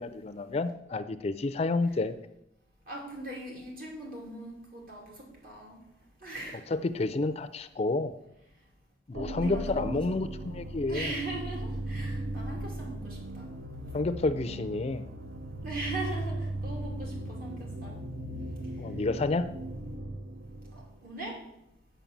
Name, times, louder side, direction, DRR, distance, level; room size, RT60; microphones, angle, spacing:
voice 1, 0.0-2.1 6.7-8.1 9.1-11.2 13.9-15.0 18.8-19.5, left 3 dB, 35° left, 11 dB, 0.4 m, -30 dB
voice 2, 2.9-5.8 6.2-6.6 9.4-9.8 10.1-10.2 10.9-13.5 15.6-18.0 20.7-21.4, right 2 dB, 55° right, -2 dB, 2.9 m, -40 dB
sound 1, 9.1-21.0, right 1 dB, 75° right, 0.7 m, -37 dB
7.2 x 5.7 x 7.1 m, 0.84 s
head